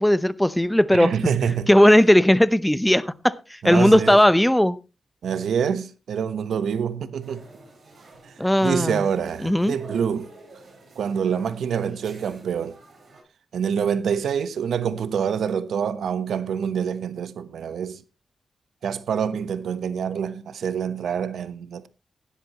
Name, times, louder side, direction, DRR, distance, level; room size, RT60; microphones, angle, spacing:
voice 1, 0.0-1.1 1.7-3.3 3.6-4.8 8.4-9.0 9.4-9.8, left 1 dB, 5° left, 0.8 m, -17 dB
voice 2, 0.9-1.7 3.6-4.2 5.2-7.4 8.2-10.3 10.9-12.8 13.5-18.0 18.8-21.9, right 7 dB, 90° right, 1.0 m, -26 dB
sound 1, 7.2-13.2, right 1 dB, 60° right, 7.9 m, -48 dB
16.5 x 11.5 x 3.0 m
wide cardioid pair, 105°, 0 cm